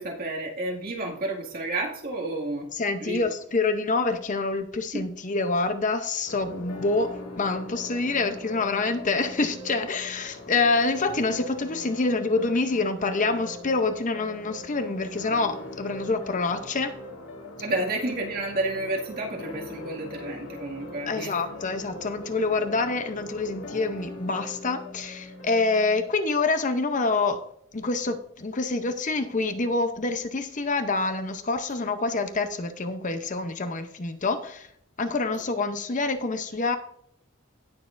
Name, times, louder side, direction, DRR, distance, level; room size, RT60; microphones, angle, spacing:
voice 1, 0.0-2.7 3.0-3.3 4.9-5.1 17.6-21.4, right 2 dB, 45° right, -1 dB, 2.1 m, -31 dB
voice 2, 2.7-16.9 21.1-27.4 27.7-34.7 35.0-36.8, left 3 dB, 35° left, 8 dB, 0.7 m, -26 dB
sound 1, 6.3-26.1, left 1 dB, 70° left, 2.0 m, -41 dB
17.5 x 6.7 x 2.5 m, 0.68 s
head